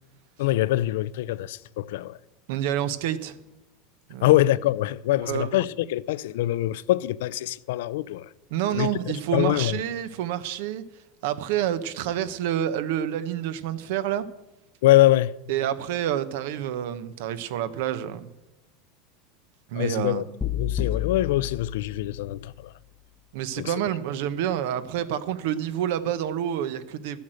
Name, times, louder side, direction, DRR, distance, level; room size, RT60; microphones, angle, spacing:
voice 1, 0.4-2.2 4.2-8.3 8.7-8.9 9.3-9.8 14.8-15.3 19.7-20.2 20.5-22.7 23.6-23.7, left 15 dB, 80° left, 0.5 m, -23 dB
voice 2, 2.5-3.4 4.1-4.3 5.2-5.6 8.5-10.8 11.2-14.3 15.5-18.3 19.7-20.2 23.3-27.2, right 10 dB, 70° right, 1.0 m, -28 dB
sound 1, 20.4-22.6, left 11 dB, 15° left, 0.7 m, -31 dB
13.0 x 8.5 x 7.7 m
supercardioid pair, 140°, 0 cm